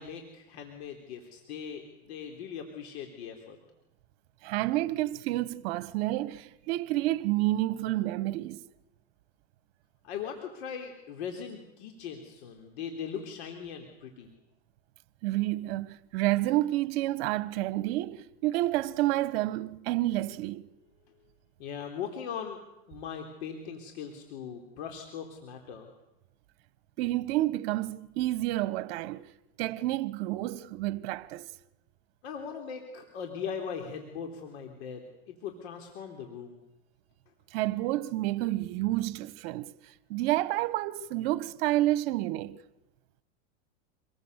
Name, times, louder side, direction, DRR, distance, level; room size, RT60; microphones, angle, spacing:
voice 1, 0.0-3.6 10.0-14.3 21.6-22.6 22.9-25.9 32.2-36.6, left 7 dB, 70° left, 3.8 m, -40 dB
voice 2, 4.4-8.6 15.2-20.7 27.0-29.3 29.6-31.5 37.5-39.7 40.1-42.6, right 16 dB, 60° right, 1.3 m, -29 dB
27.0 x 20.5 x 8.2 m
supercardioid pair, 125°, 34 cm